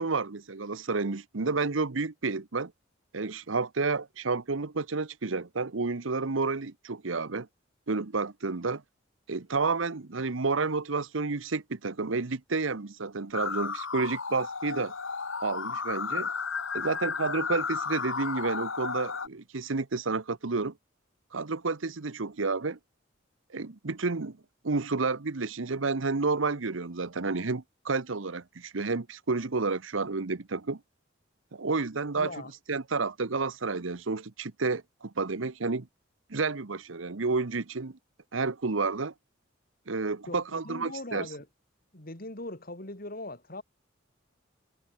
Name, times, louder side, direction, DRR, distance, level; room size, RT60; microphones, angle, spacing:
voice 1, 0.0-2.7 3.1-7.5 7.9-8.8 9.3-14.9 15.4-16.3 16.7-20.7 21.3-22.8 23.5-24.4 24.6-30.8 31.5-32.3 32.7-35.9 36.3-38.0 38.3-39.1 39.9-41.3, right 4 dB, 90° right, 1.0 m, -30 dB
sound 1, 13.3-19.3, left 5 dB, 85° left, 2.1 m, -33 dB
voice 2, 32.2-32.5 40.3-41.5 41.9-43.6, left 2 dB, 50° left, 4.0 m, -40 dB
head